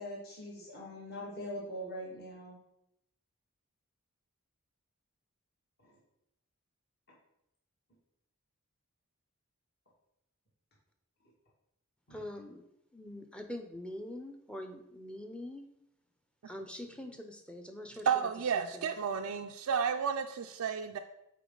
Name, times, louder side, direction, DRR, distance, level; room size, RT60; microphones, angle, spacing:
voice 1, 0.0-2.6 5.8-6.0 12.1-12.2, equal, 50° left, -4 dB, 2.0 m, -42 dB
voice 2, 12.1-12.6 12.9-15.6 16.5-18.1 18.7-18.9, left 1 dB, 5° left, 5 dB, 0.6 m, -44 dB
voice 3, 18.1-21.0, right 7 dB, 85° right, 4 dB, 0.4 m, -32 dB
8.2 x 4.4 x 3.8 m, 0.82 s
head